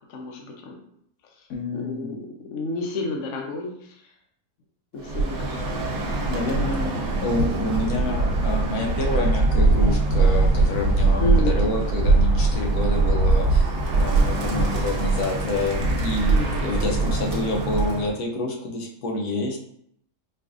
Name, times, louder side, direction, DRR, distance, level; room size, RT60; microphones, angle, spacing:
voice 1, 0.1-0.8 1.7-3.9 4.9-5.8 11.2-11.6 16.2-16.6, left 2 dB, 65° left, 1 dB, 0.9 m, -31 dB
voice 2, 1.5-2.2 6.3-7.0 7.2-19.6, left 2 dB, 80° left, 0 dB, 1.2 m, -28 dB
Bird, 5.0-18.1, right 3 dB, 70° right, 1.1 m, -22 dB
4.6 x 2.5 x 2.4 m, 0.69 s
omnidirectional pair, 1.7 m